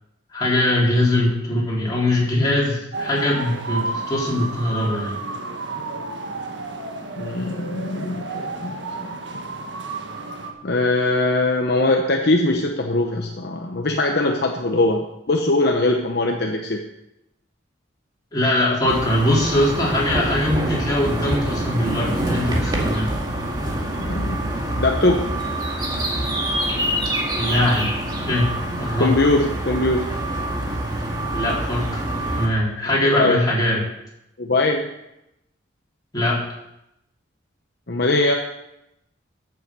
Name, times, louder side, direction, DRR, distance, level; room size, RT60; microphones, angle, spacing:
voice 1, 0.3-5.2 18.3-23.1 27.3-27.9 28.2-28.5 28.8-29.1 31.3-32.1 32.3-33.8 36.1-36.4, left 1 dB, 20° left, -6 dB, 4.1 m, -21 dB
sound 1, 2.9-10.5, right 3 dB, 70° right, 1.6 m, -31 dB
voice 2, 7.2-9.2 10.6-16.8 24.0-24.4 24.8-25.3 29.0-30.1 33.1-33.4 34.4-34.9 37.9-38.3, left 2 dB, 55° left, 2 dB, 0.9 m, -21 dB
sound 2, 18.9-32.5, right 1 dB, 20° right, 2.0 m, -25 dB
14.5 x 7.1 x 5.5 m, 0.87 s
head